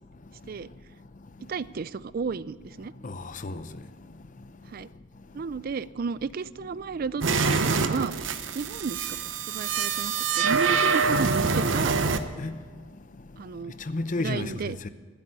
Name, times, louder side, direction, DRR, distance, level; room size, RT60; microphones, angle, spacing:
voice 1, 1.5-2.9 4.7-4.9 5.3-7.2 7.5-8.3 8.5-12.1 13.4-13.7 14.2-14.8, right 5 dB, 50° right, 0.4 m, -33 dB
voice 2, 3.0-3.7 12.4-12.6 13.9-14.9, left 2 dB, 45° left, 0.7 m, -32 dB
sound 1, 7.2-12.2, right 5 dB, 80° right, 0.9 m, -25 dB
15.0 x 8.2 x 9.9 m
head